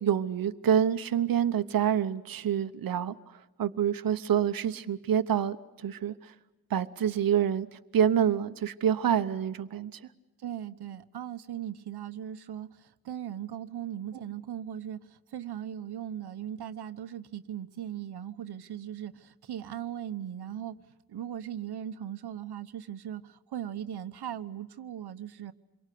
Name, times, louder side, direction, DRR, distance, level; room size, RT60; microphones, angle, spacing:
voice 1, 0.0-6.3 6.7-10.0, right 9 dB, 65° right, 9 dB, 1.0 m, -27 dB
voice 2, 10.4-20.8 21.1-25.5, right 10 dB, 85° right, 10 dB, 1.2 m, -38 dB
27.5 x 23.5 x 8.5 m, 1.1 s
wide cardioid pair, 140°, 38 cm